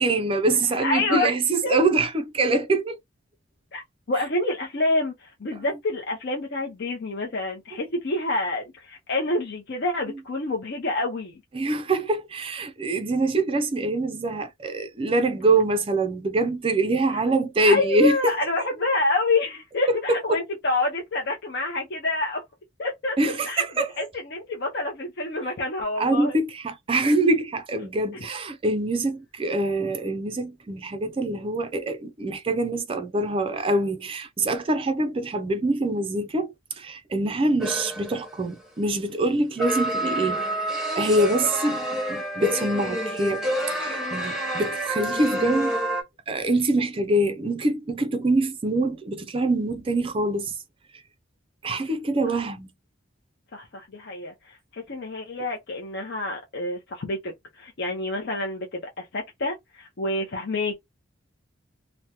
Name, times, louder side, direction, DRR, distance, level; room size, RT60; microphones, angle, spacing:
voice 1, 0.0-3.0 11.5-18.3 19.9-20.4 23.2-23.9 26.0-40.4 41.0-43.4 43.7-45.8 46.3-50.5 51.6-52.7, right 2 dB, 25° right, 0.4 m, -24 dB
voice 2, 0.8-1.3 1.6-1.8 3.7-3.8 4.1-11.4 17.6-22.4 22.8-23.2 23.4-23.6 24.0-26.4 51.7-51.8 52.3-52.4 53.5-60.8, left 2 dB, 55° left, 0.6 m, -27 dB
sound 1, 37.6-38.4 39.6-46.0, right 1 dB, ahead, 0.7 m, -28 dB
3.4 x 2.1 x 2.8 m
head